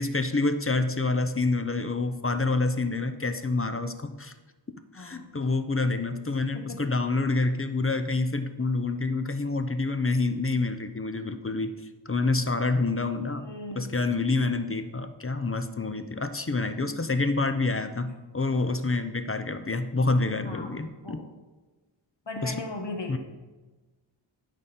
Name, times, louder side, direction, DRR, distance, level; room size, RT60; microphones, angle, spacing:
voice 1, 0.0-4.3 4.9-13.4 13.8-21.2 22.4-22.6 23.1-23.2, left 3 dB, 30° left, 9 dB, 0.6 m, -27 dB
voice 2, 4.9-5.3 6.5-6.8 13.3-13.9 20.4-20.7 21.0-21.3 22.3-23.2, left 2 dB, 65° left, 3 dB, 1.4 m, -37 dB
12.5 x 5.1 x 4.3 m, 1.2 s
wide cardioid pair, 50°, 47 cm